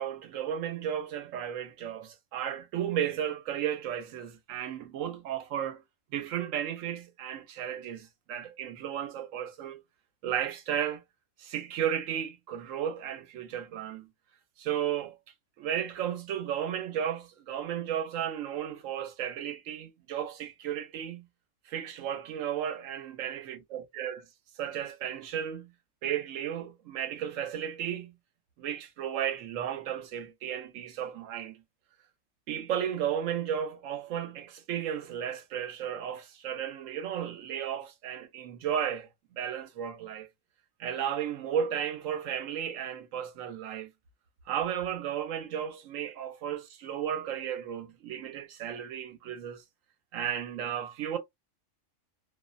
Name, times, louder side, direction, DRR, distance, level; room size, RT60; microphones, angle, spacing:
voice 1, 0.0-5.8 6.1-9.8 10.2-11.0 11.4-14.1 14.6-15.2 15.6-21.3 21.7-23.6 23.9-24.2 24.6-25.7 26.0-28.1 28.6-31.6 32.5-39.1 39.3-40.3 40.8-43.9 44.5-49.6 50.1-51.2, right 9 dB, 90° right, 1.0 m, -34 dB
2.5 x 2.0 x 2.4 m
omnidirectional pair, 1.3 m